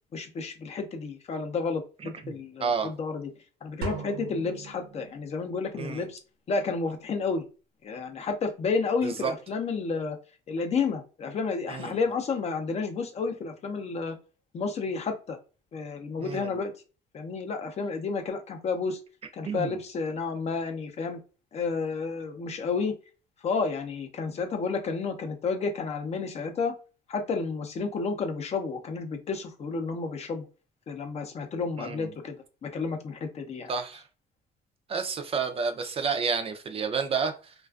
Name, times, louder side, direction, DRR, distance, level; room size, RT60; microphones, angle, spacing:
voice 1, 0.1-3.3 3.6-6.2 6.5-7.4 7.8-10.2 10.5-14.2 14.5-15.4 15.7-16.7 17.1-19.0 19.3-21.2 21.5-22.9 23.4-26.7 27.1-30.5 30.9-32.4 32.6-33.7, left 4 dB, 40° left, 0.5 m, -31 dB
voice 2, 2.0-2.9 5.8-6.0 9.0-9.3 11.7-12.0 16.2-16.6 19.4-19.8 31.8-32.1 33.7-34.0 34.9-37.5, right 5 dB, 35° right, 0.4 m, -30 dB
sound 1, 3.8-5.6, right 3 dB, 80° right, 0.7 m, -38 dB
2.4 x 2.3 x 2.3 m
cardioid pair, 110°, 17 cm